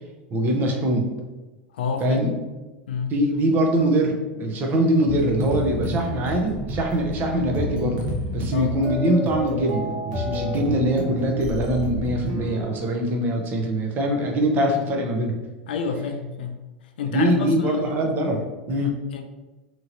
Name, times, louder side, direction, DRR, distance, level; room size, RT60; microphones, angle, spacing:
voice 1, 0.3-1.1 2.0-2.3 3.1-15.4 17.1-18.9, right 1 dB, 40° right, 2 dB, 0.6 m, -23 dB
voice 2, 1.7-2.2 2.9-3.1 8.5-8.7 15.7-16.5 17.0-18.2 19.1-19.2, left 6 dB, 80° left, 6 dB, 0.4 m, -29 dB
sound 1, 5.0-12.6, equal, 70° right, 0.8 m, -29 dB
2.9 x 2.7 x 2.5 m, 1.2 s
hypercardioid pair, 100°, 5 cm